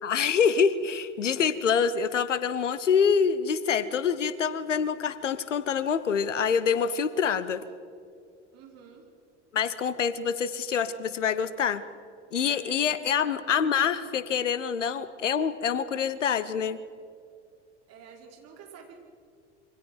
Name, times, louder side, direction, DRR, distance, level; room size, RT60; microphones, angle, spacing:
voice 1, 0.0-7.6 9.5-11.8 12.3-16.8, left 7 dB, 80° left, 15 dB, 1.1 m, -26 dB
voice 2, 8.5-9.1 12.3-13.7 17.9-19.0, right 6 dB, 45° right, 0 dB, 5.3 m, -49 dB
27.5 x 24.0 x 4.5 m, 2.3 s
figure-of-eight pair, 75°, 36 cm